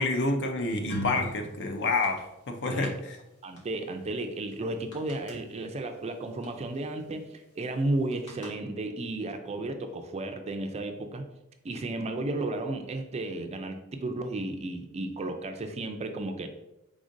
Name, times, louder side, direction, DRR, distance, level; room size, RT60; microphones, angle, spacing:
voice 1, 0.0-3.2, left 3 dB, 55° left, 5 dB, 0.6 m, -28 dB
sound 1, 0.9-1.4 1.9-2.2 2.8-2.9 3.6-3.7 3.9-4.0 4.5-4.6 4.9-5.3 6.4-6.5 6.8-7.0 8.1-8.5, left 1 dB, 85° left, 1.4 m, -35 dB
voice 2, 3.4-7.3 7.6-11.3 11.6-16.5, right 2 dB, 30° right, 6 dB, 0.4 m, -33 dB
4.9 x 3.6 x 2.6 m, 0.91 s
head